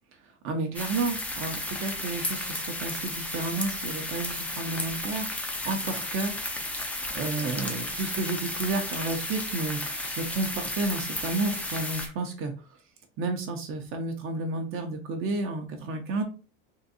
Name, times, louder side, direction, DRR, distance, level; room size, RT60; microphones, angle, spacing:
voice 1, 0.4-6.3 7.1-12.8 13.2-16.2, right 3 dB, 45° right, 4 dB, 0.7 m, -31 dB
sound 1, 0.7-12.1, left 1 dB, 5° left, 0.3 m, -33 dB
3.7 x 2.6 x 2.6 m, 0.34 s
cardioid pair, 155°, 29 cm